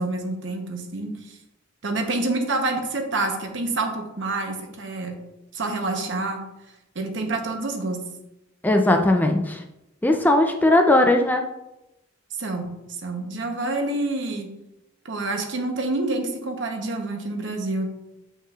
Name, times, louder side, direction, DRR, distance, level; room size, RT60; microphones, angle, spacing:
voice 1, 0.0-1.4 1.8-5.2 5.5-6.4 6.9-8.0 12.4-12.7 13.0-14.5 15.0-17.9, right 2 dB, 65° right, 4 dB, 0.9 m, -27 dB
voice 2, 8.6-9.6 10.0-11.4, left 1 dB, 10° left, 4 dB, 0.4 m, -18 dB
7.3 x 5.5 x 2.4 m, 0.91 s
head